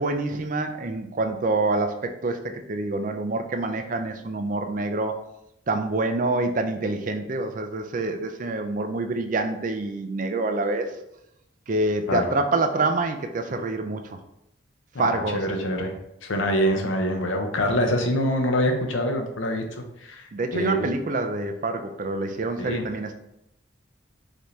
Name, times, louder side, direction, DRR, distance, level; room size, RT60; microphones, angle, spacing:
voice 1, 0.0-5.1 5.7-10.9 11.7-14.0 15.0-15.8 20.3-23.1, right 2 dB, 40° right, 6 dB, 0.4 m, -26 dB
voice 2, 14.9-15.9 16.2-20.2 20.5-20.8 22.6-22.9, equal, 75° left, 3 dB, 0.7 m, -25 dB
5.0 x 2.7 x 3.2 m, 0.83 s
head